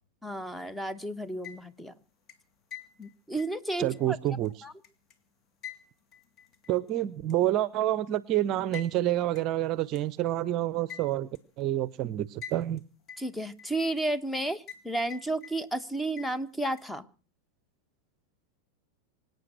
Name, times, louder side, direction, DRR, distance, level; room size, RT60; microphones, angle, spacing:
voice 1, 0.2-1.9 3.0-4.2 4.6-4.7 13.2-17.1, right 2 dB, 5° left, 14 dB, 1.1 m, -32 dB
sound 1, 1.2-1.9 2.3-5.1 5.6-6.9 7.3-7.4 8.7-8.9 9.3-9.4 9.9-10.0 10.9-11.4 12.4-12.8 13.1-14.0 14.7-14.8 15.1-15.8 16.2-16.8, left 8 dB, 30° left, 2.1 m, -46 dB
voice 2, 3.8-4.5 6.7-11.3 11.6-12.8, right 13 dB, 35° right, 20 dB, 0.7 m, -28 dB
25.0 x 9.2 x 6.2 m, 0.39 s
figure-of-eight pair, 90°, 0 cm